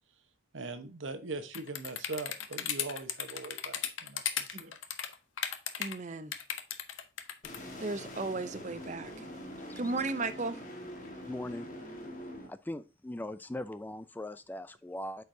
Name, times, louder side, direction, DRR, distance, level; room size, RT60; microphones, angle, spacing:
voice 1, 0.5-4.8, right 3 dB, 85° right, 1.0 m, -41 dB
sound 1, 1.5-5.9 6.3-7.6, left 9 dB, 85° left, 0.7 m, -35 dB
voice 2, 5.8-6.3 7.8-9.1 9.8-10.6, right 3 dB, 35° right, 0.5 m, -35 dB
sound 2, 7.4-12.5, equal, 40° left, 1.5 m, -44 dB
voice 3, 11.3-11.7 12.5-15.2, left 1 dB, 10° left, 0.3 m, -40 dB
8.2 x 4.6 x 2.7 m
head